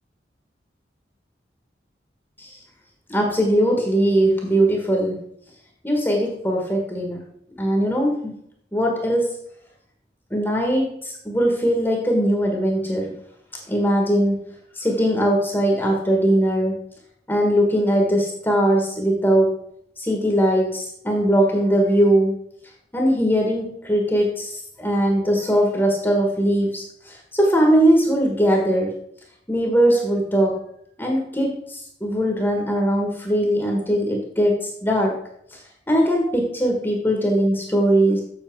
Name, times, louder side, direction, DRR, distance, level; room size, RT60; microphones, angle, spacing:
voice 1, 3.1-5.2 5.8-7.2 7.6-8.3 8.7-9.3 10.3-13.2 13.7-14.4 14.7-16.8 17.3-19.6 20.0-22.3 22.9-29.0 29.5-30.6 31.0-35.2 35.9-38.2, equal, 10° left, 0 dB, 1.4 m, -20 dB
7.2 x 6.8 x 4.6 m, 0.69 s
head